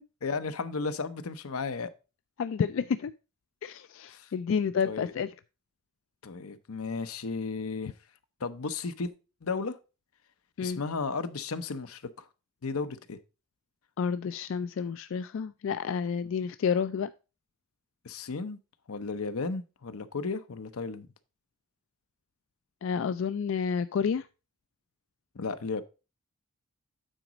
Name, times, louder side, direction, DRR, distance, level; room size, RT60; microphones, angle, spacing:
voice 1, 0.2-1.9 4.1-4.3 4.9-5.1 6.2-7.9 8.4-9.1 9.4-9.8 10.6-12.2 12.6-13.2 18.0-18.6 18.9-21.1 25.3-25.8, left 4 dB, 85° left, 0.7 m, -34 dB
voice 2, 2.4-3.1 3.6-5.3 10.6-10.8 14.0-17.1 22.8-24.3, left 6 dB, 60° left, 0.3 m, -30 dB
9.0 x 4.1 x 4.9 m
head